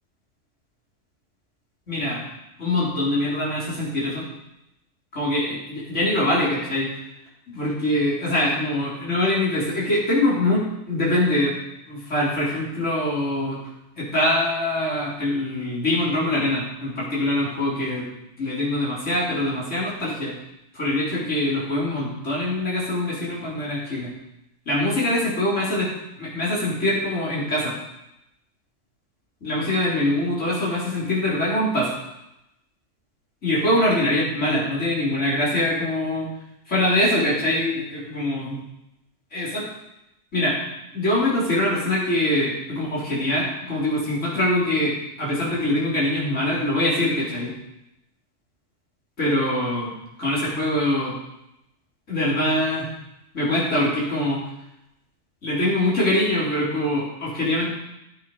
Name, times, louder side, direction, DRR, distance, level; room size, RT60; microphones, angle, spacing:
voice 1, 1.9-2.2 2.6-4.3 5.1-6.9 7.5-11.5 11.9-13.6 14.0-18.1 18.4-20.3 20.7-24.1 24.7-25.9 26.2-27.7 29.4-31.9 33.4-36.3 36.7-38.6 39.3-39.6 40.3-40.6 40.9-47.5 49.2-49.9 50.2-51.1 52.1-52.9 53.3-54.4 55.4-57.7, left 1 dB, 70° left, -7 dB, 3.9 m, -23 dB
15.0 x 8.9 x 5.5 m, 0.89 s
omnidirectional pair, 1.3 m